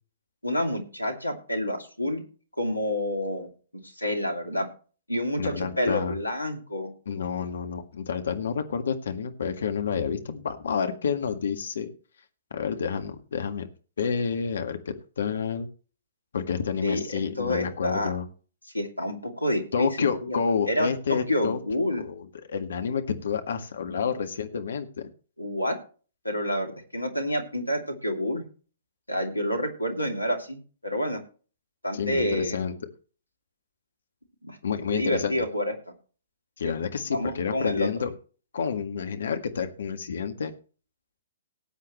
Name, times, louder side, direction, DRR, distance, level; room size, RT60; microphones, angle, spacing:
voice 1, 0.4-2.2 2.6-3.5 3.8-4.7 5.1-6.9 16.8-18.1 18.7-20.4 20.7-22.0 24.5-24.6 25.4-25.8 26.2-28.5 29.1-31.2 31.8-32.6 34.4-35.6 37.1-37.9, left 1 dB, 90° left, 4 dB, 2.7 m, -28 dB
voice 2, 5.4-6.2 7.1-11.9 12.5-13.7 14.0-15.7 16.3-18.2 19.7-21.6 22.0-25.1 31.9-32.7 34.6-35.3 36.6-38.1 38.5-40.5, left 6 dB, 60° left, 7 dB, 1.8 m, -29 dB
19.0 x 8.4 x 3.1 m, 0.38 s
figure-of-eight pair, 120°, 0 cm